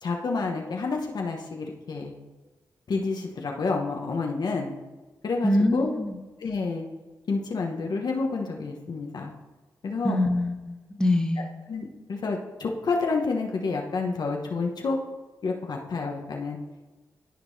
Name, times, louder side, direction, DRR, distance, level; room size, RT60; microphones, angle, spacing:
voice 1, 0.0-2.1 2.9-4.7 5.2-5.9 6.4-6.8 7.3-9.3 9.8-10.2 11.7-15.0 15.4-16.6, left 4 dB, 65° left, 1 dB, 1.0 m, -29 dB
voice 2, 5.4-6.2 10.0-11.5, left 1 dB, 10° left, 3 dB, 1.3 m, -24 dB
13.0 x 4.6 x 2.7 m, 1.2 s
supercardioid pair, 45°, 8 cm